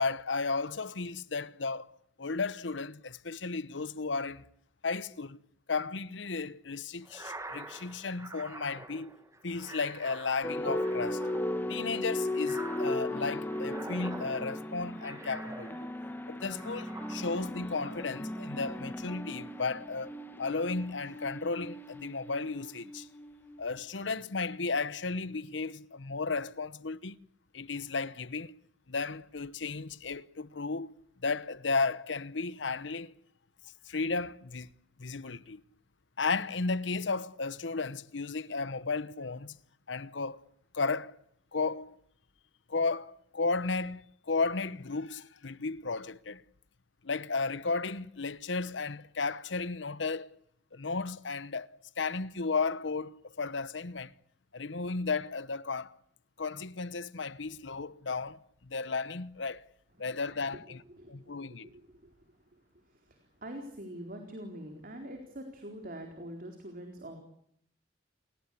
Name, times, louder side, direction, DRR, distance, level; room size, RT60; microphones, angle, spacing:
voice 1, 0.0-4.4 4.8-5.4 5.7-9.2 9.4-11.2 11.7-15.8 16.3-23.1 23.6-27.2 27.5-28.6 28.9-30.9 31.2-33.2 33.8-34.7 35.0-35.6 36.2-39.6 39.9-40.4 40.7-41.2 41.5-42.0 42.7-46.4 47.0-50.3 50.7-51.7 52.0-54.1 54.5-56.0 56.4-59.7 60.0-60.8 61.1-61.7, left 4 dB, 75° left, 1.0 m, -34 dB
sound 1, 7.0-16.1 16.5-17.6, right 2 dB, 15° right, 2.4 m, -47 dB
sound 2, 10.4-23.8, left 1 dB, 10° left, 2.1 m, -37 dB
voice 2, 60.9-67.2, right 1 dB, 50° right, 4.2 m, -45 dB
29.0 x 21.0 x 8.5 m
head